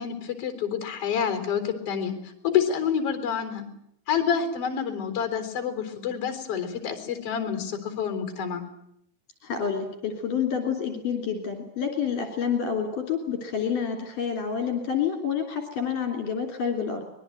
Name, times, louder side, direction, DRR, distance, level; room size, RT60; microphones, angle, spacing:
voice 1, 0.0-2.1 2.4-3.7 4.1-8.6, left 7 dB, 40° left, 8 dB, 4.6 m, -28 dB
voice 2, 9.4-17.0, left 7 dB, 60° left, 4 dB, 4.6 m, -28 dB
24.0 x 21.5 x 9.2 m, 0.71 s
omnidirectional pair, 4.3 m